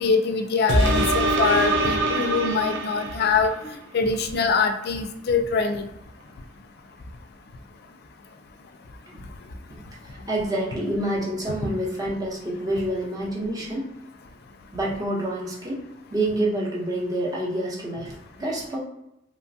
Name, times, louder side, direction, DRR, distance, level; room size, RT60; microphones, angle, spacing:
voice 1, 0.0-5.8, left 4 dB, 55° left, 6 dB, 0.4 m, -24 dB
sound 1, 0.7-3.6 4.1-4.2, right 2 dB, 70° right, 0.5 m, -23 dB
voice 2, 10.3-13.9 14.7-15.8 16.1-18.8, right 1 dB, 20° right, -4 dB, 0.8 m, -27 dB
3.0 x 2.2 x 2.6 m, 0.85 s
head